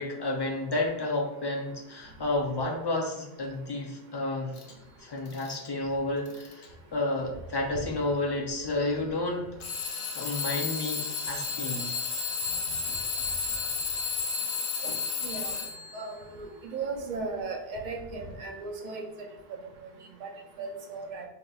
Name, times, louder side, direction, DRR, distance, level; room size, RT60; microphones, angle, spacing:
voice 1, 0.0-4.6 5.0-9.5 10.1-11.9, left 2 dB, 45° left, 1 dB, 0.3 m, -31 dB
Alarm / Clock, 4.6-4.7 5.3-5.7 6.3-6.7 7.5-7.6 9.6-16.0, left 5 dB, 70° left, 0.8 m, -32 dB
voice 2, 15.2-15.5 15.9-19.0 20.2-20.3 20.6-21.2, right 3 dB, 55° right, 1 dB, 0.7 m, -36 dB
4.9 x 2.8 x 2.3 m, 0.87 s
omnidirectional pair, 1.0 m